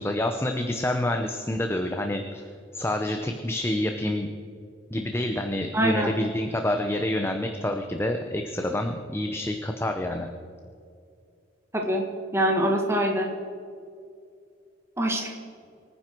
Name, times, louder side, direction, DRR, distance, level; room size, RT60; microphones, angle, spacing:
voice 1, 0.0-2.5 2.7-4.3 4.9-10.3, left 1 dB, 10° left, 4 dB, 0.7 m, -28 dB
voice 2, 5.7-6.1 11.7-12.0 12.3-13.3 15.0-15.3, right 1 dB, 15° right, 1 dB, 1.6 m, -24 dB
24.5 x 9.8 x 4.6 m, 2.4 s
head